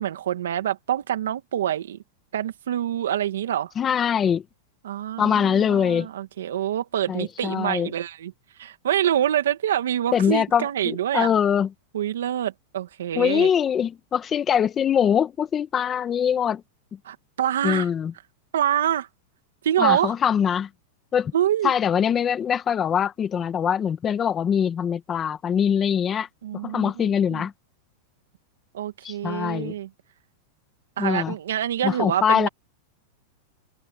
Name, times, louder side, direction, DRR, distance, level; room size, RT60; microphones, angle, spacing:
voice 1, 0.0-2.0 2.3-3.7 4.8-8.3 8.6-11.3 11.9-13.5 17.1-17.9 18.5-19.1 19.6-20.1 21.3-21.7 26.4-27.4 28.7-29.9 31.0-32.5, right 11 dB, 90° right, 2.3 m, -26 dB
voice 2, 3.8-4.4 5.2-6.1 7.1-7.9 10.1-11.7 13.2-16.6 17.6-18.1 19.8-20.7 21.1-21.3 21.6-26.3 26.6-27.5 29.0-29.7 31.0-31.4 31.8-32.5, left 8 dB, 20° left, 1.7 m, -23 dB
supercardioid pair, 145°, 0 cm